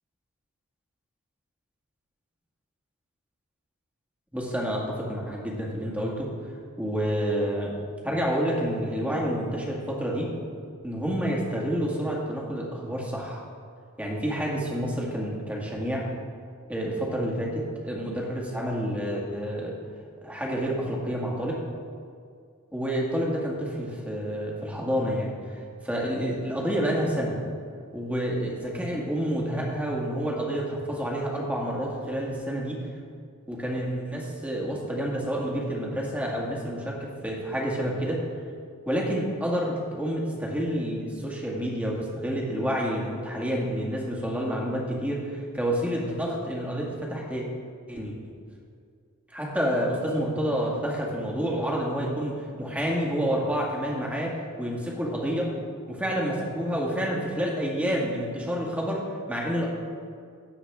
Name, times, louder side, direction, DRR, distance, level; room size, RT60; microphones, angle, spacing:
voice 1, 4.3-6.3 6.8-7.7 8.0-10.3 10.8-13.4 14.0-16.0 16.7-19.7 20.2-21.6 22.7-27.4 27.9-32.8 33.5-38.2 38.9-47.4 47.9-48.2 49.3-55.5 55.9-59.0 59.3-59.7, equal, 5° right, -3 dB, 1.9 m, -29 dB
17.0 x 7.2 x 3.6 m, 2.2 s
head